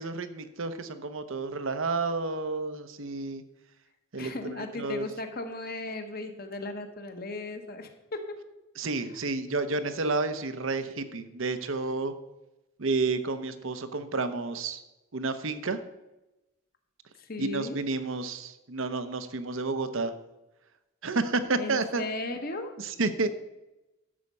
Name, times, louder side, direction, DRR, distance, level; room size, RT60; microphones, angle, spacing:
voice 1, 0.0-3.4 4.1-4.3 4.8-5.1 8.8-12.1 12.8-14.8 15.1-15.8 17.4-20.1 21.0-22.0 22.8-23.3, right 3 dB, 65° right, 10 dB, 0.8 m, -30 dB
voice 2, 4.2-8.4 17.2-17.8 21.6-22.7, left 2 dB, 45° left, 6 dB, 1.2 m, -36 dB
11.0 x 7.3 x 5.4 m, 0.99 s
head